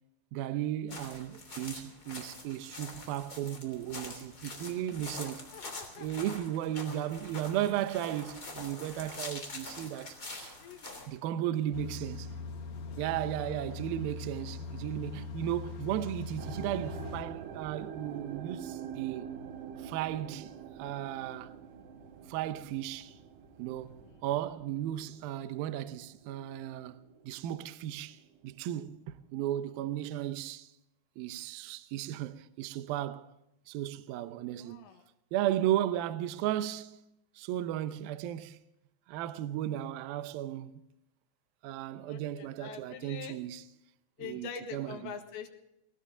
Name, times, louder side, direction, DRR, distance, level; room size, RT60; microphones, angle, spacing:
voice 1, 0.3-5.5 6.0-10.5 11.1-12.3 13.0-19.3 19.8-20.5 20.8-21.5 22.3-23.2 23.6-30.7 31.2-33.3 33.7-34.9 35.3-37.0 37.4-38.6 39.1-40.7 41.6-43.7 44.2-45.1, right 12 dB, 90° right, 2.1 m, -35 dB
sound 1, 0.9-11.1, left 2 dB, 25° left, 2.9 m, -45 dB
voice 2, 5.2-6.3 10.6-11.2 34.6-35.1 42.1-43.4 44.2-45.5, left 7 dB, 70° left, 3.8 m, -45 dB
sound 2, 11.7-17.2, left 4 dB, 55° left, 2.1 m, -41 dB
sound 3, 16.4-27.5 27.8-28.4 29.0-29.1, right 8 dB, 70° right, 3.3 m, -45 dB
19.5 x 18.5 x 3.8 m
omnidirectional pair, 5.4 m